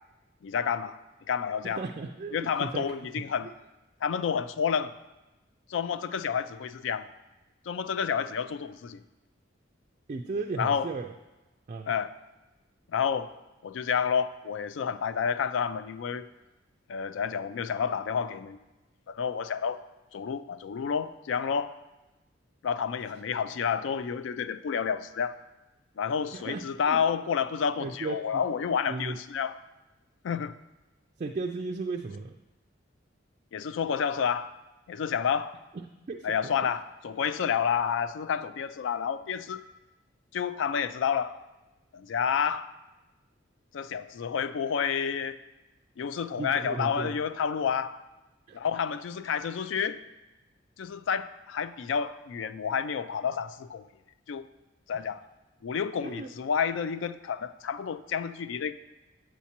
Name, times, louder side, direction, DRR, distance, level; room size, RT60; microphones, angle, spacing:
voice 1, 0.4-1.0 1.3-1.8 2.3-3.5 4.0-4.9 5.7-7.1 7.7-9.0 10.6-10.9 11.9-12.1 12.9-13.3 13.6-16.3 16.9-18.6 19.1-19.8 20.1-21.7 22.6-25.4 26.0-29.5 30.2-30.5 33.5-34.5 34.9-35.6 36.2-39.6 40.3-41.4 41.9-42.7 43.7-45.4 46.0-48.0 48.5-50.0 50.8-53.9 54.3-54.5 54.9-55.2 55.6-58.7, left 7 dB, 70° left, 0.3 m, -29 dB
voice 2, 1.6-3.5 10.1-11.1 11.7-11.9 26.3-27.0 27.8-28.4 28.9-29.2 31.2-32.4 35.7-36.7 46.4-47.2 48.5-48.6 54.9-55.1 56.0-56.3, right 3 dB, 35° right, 0.3 m, -36 dB
8.3 x 7.2 x 2.9 m
head